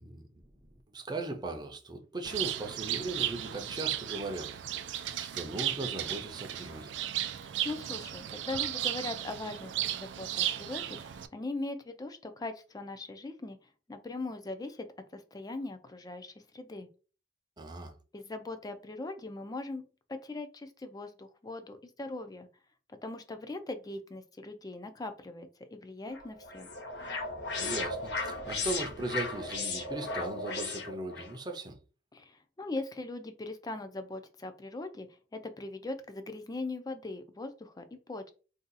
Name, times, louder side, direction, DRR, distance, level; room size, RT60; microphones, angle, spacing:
voice 1, 0.0-4.6 5.2-6.9 17.6-17.9 27.6-31.8, right 2 dB, 25° right, 0.6 m, -38 dB
Bird, 2.2-11.3, right 12 dB, 90° right, 0.3 m, -35 dB
voice 2, 7.2-13.6 13.9-14.9 15.1-16.9 18.1-19.8 20.1-22.5 23.0-26.7 32.1-35.1 35.3-38.3, left 2 dB, 20° left, 0.4 m, -40 dB
sound 1, 26.1-31.3, left 3 dB, 75° left, 0.7 m, -36 dB
2.7 x 2.3 x 3.9 m
head